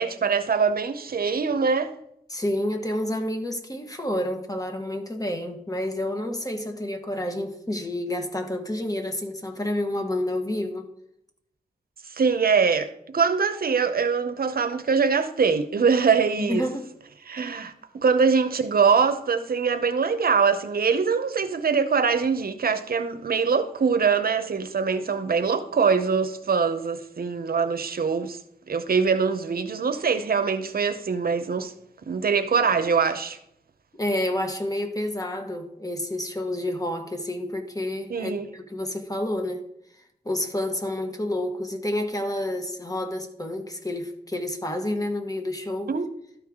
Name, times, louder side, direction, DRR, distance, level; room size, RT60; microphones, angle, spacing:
voice 1, 0.0-1.9 12.1-16.7 17.3-28.4 28.7-31.7 32.1-33.4 38.1-38.5 45.9-46.0, right 5 dB, 70° right, 0.7 m, -23 dB
voice 2, 2.3-10.9 16.4-16.9 34.0-39.6 40.2-45.9, left 1 dB, 20° left, 1.4 m, -29 dB
12.5 x 4.7 x 3.6 m
cardioid pair, 50°, 16 cm